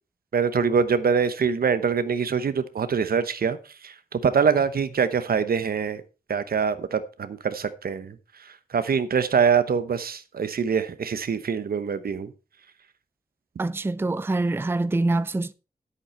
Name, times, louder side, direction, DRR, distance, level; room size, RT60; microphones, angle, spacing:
voice 1, 0.3-6.0 6.3-12.3, right 6 dB, 80° right, 0.9 m, -24 dB
voice 2, 13.6-15.5, right 2 dB, 15° right, 0.4 m, -25 dB
10.0 x 8.4 x 4.4 m
wide cardioid pair, 125°, 15 cm